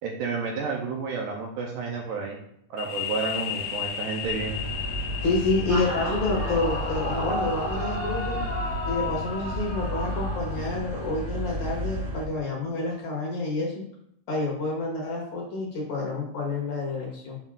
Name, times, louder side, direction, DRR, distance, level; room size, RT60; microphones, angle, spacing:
voice 1, 0.0-2.4 2.7-4.6, right 5 dB, 80° right, 1 dB, 2.0 m, -31 dB
sound 1, 2.8-10.2, left 10 dB, 80° left, 2.2 m, -36 dB
sound 2, 4.2-12.3, right 1 dB, 65° right, 1.8 m, -32 dB
voice 2, 5.2-8.4 8.9-13.7 14.3-17.4, left 3 dB, 60° left, -3 dB, 2.3 m, -28 dB
Yell / Screaming, 6.2-11.1, left 1 dB, 30° right, 1.0 m, -33 dB
7.3 x 5.3 x 2.4 m, 0.71 s
omnidirectional pair, 4.3 m